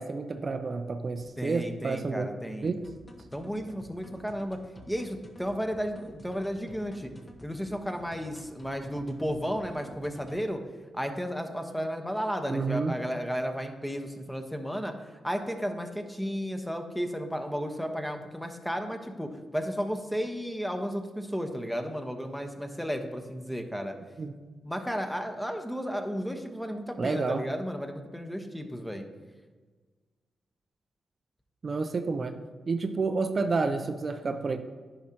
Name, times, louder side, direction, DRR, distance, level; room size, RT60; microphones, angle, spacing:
voice 1, 0.0-2.3 2.6-2.8 12.5-12.9 24.2-24.3 27.0-27.4 31.6-32.3 32.7-34.6, right 4 dB, 50° right, 7 dB, 0.5 m, -30 dB
voice 2, 1.4-2.7 3.3-4.6 4.9-7.1 7.4-10.6 10.9-14.9 15.2-23.9 24.6-29.0, equal, 5° left, 5 dB, 1.1 m, -33 dB
sound 1, 2.8-10.5, left 1 dB, 35° left, 1.3 m, -51 dB
10.0 x 4.9 x 2.9 m, 1.4 s
supercardioid pair, 40°, 0 cm